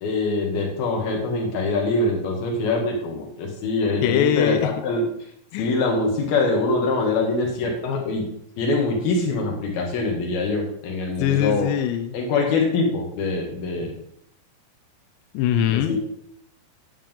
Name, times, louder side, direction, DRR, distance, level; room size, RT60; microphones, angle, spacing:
voice 1, 0.0-5.1 5.6-8.3 8.6-11.7 12.1-13.9 15.7-16.0, left 3 dB, 60° left, 0 dB, 3.5 m, -24 dB
voice 2, 4.0-4.7 5.5-5.7 11.2-12.1 15.3-16.0, left 10 dB, 85° left, 8 dB, 2.5 m, -22 dB
10.0 x 9.4 x 3.8 m, 0.69 s
omnidirectional pair, 5.7 m